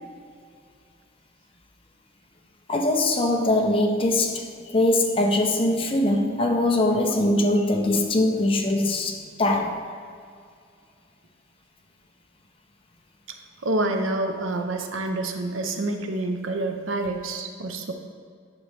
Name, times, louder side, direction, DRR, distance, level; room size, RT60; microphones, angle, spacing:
voice 1, 2.7-9.8, left 1 dB, 30° left, 0.7 m, -22 dB
voice 2, 13.6-17.9, right 2 dB, 85° right, 0.7 m, -27 dB
9.2 x 5.6 x 3.4 m
head